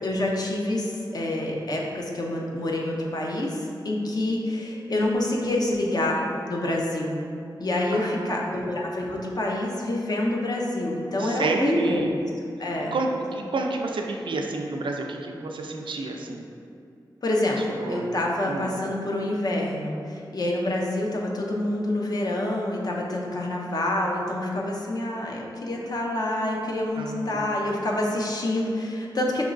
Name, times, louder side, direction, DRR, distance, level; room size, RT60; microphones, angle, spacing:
voice 1, 0.0-7.1 7.6-12.0 12.6-12.9 17.2-29.4, left 1 dB, 55° left, -1 dB, 0.6 m, -27 dB
voice 2, 7.9-8.7 11.2-12.1 12.9-16.4 17.8-18.1 18.5-18.7 26.9-27.5, right 3 dB, 80° right, 2 dB, 0.4 m, -30 dB
5.2 x 2.9 x 2.5 m, 2.5 s
wide cardioid pair, 110°, 8 cm